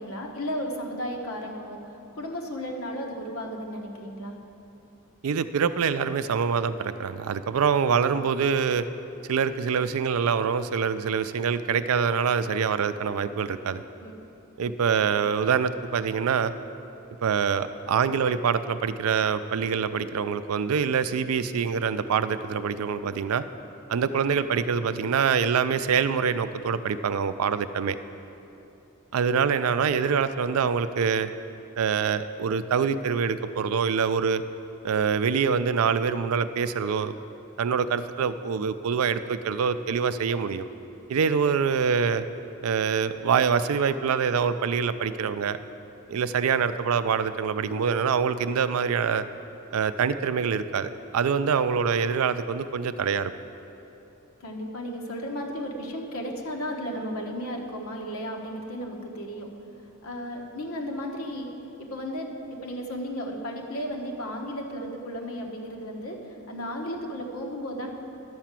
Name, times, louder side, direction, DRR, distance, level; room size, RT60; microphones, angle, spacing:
voice 1, 0.0-1.8 2.1-4.4 14.0-14.1 54.4-59.5 60.0-61.5 61.8-66.2 66.5-67.9, equal, 70° left, 1 dB, 1.3 m, -34 dB
voice 2, 5.2-8.9 9.3-13.8 14.6-16.5 17.2-23.4 23.9-28.0 29.1-31.3 31.8-34.4 34.8-37.1 37.6-40.7 41.1-42.2 42.6-45.6 46.1-49.3 49.7-53.3, right 6 dB, 75° right, 12 dB, 0.4 m, -25 dB
11.0 x 5.8 x 7.4 m, 2.9 s
head